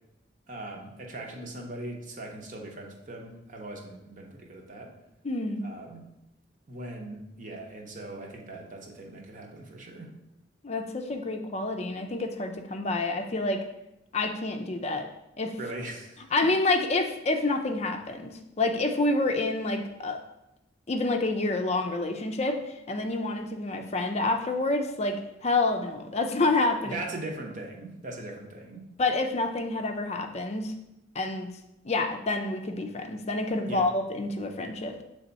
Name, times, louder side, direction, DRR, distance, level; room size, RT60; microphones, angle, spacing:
voice 1, 0.5-4.9 5.6-6.1 6.7-10.1 15.6-16.3 26.8-28.9 33.7-33.9, right 2 dB, 45° right, 1 dB, 0.9 m, -40 dB
voice 2, 5.2-5.6 10.6-13.6 14.1-15.1 15.4-15.5 16.3-20.2 20.9-27.0 29.0-30.7 31.1-31.5 31.8-35.0, left 2 dB, 35° left, 5 dB, 0.5 m, -28 dB
7.2 x 3.4 x 4.0 m, 0.87 s
head